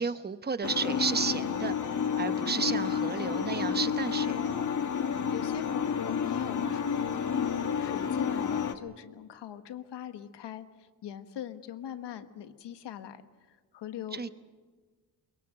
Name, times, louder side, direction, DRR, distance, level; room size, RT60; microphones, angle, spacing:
voice 1, 0.0-1.7 2.2-4.7 14.1-14.3, right 5 dB, 25° right, 12 dB, 0.9 m, -32 dB
sound 1, 0.6-8.7, left 7 dB, 45° left, 1.4 m, -30 dB
voice 2, 5.3-10.6 11.0-13.2 13.7-14.3, left 10 dB, 85° left, 9 dB, 1.5 m, -41 dB
22.5 x 22.5 x 8.0 m, 1.4 s
cardioid pair, 110°, 41 cm